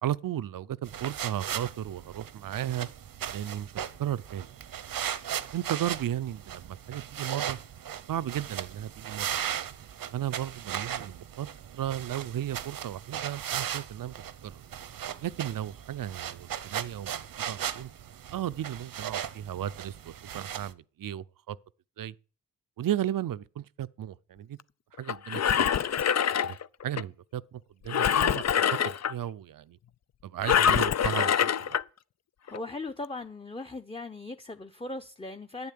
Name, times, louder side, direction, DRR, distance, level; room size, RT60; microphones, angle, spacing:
voice 1, 0.0-2.9 3.3-3.7 4.0-4.5 5.5-7.6 8.1-9.5 10.1-11.5 11.7-14.1 14.4-14.6 15.2-17.9 18.3-21.6 22.0-22.1 22.8-24.6 25.0-25.7 26.4-26.6 26.8-29.8 30.2-31.8, right 11 dB, 75° right, 0.6 m, -35 dB
sound 1, 0.9-20.7, right 9 dB, 90° right, 1.0 m, -37 dB
Engine, 25.1-27.0 27.9-29.1 30.4-31.8 32.5-32.6, left 8 dB, 50° left, 0.5 m, -25 dB
voice 2, 32.4-35.7, left 2 dB, 15° left, 0.9 m, -38 dB
11.0 x 9.3 x 8.5 m
cardioid pair, 75°, 33 cm